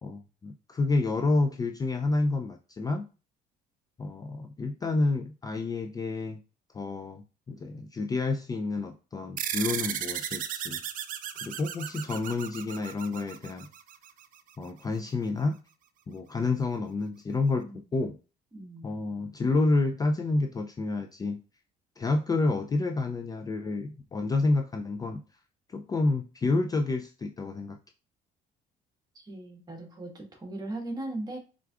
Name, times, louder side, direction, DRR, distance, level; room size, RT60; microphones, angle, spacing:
voice 1, 0.0-3.1 4.0-6.4 6.7-10.8 11.4-13.7 14.6-15.6 16.1-18.2 18.8-21.4 22.0-25.2 25.7-27.8, left 3 dB, 20° left, 5 dB, 0.3 m, -29 dB
sound 1, 9.4-14.2, right 9 dB, 55° right, 0.5 m, -35 dB
voice 2, 18.5-19.0 29.1-31.4, right 2 dB, 25° right, 3 dB, 1.4 m, -38 dB
4.6 x 3.6 x 2.4 m, 0.33 s
cardioid pair, 110°, 17 cm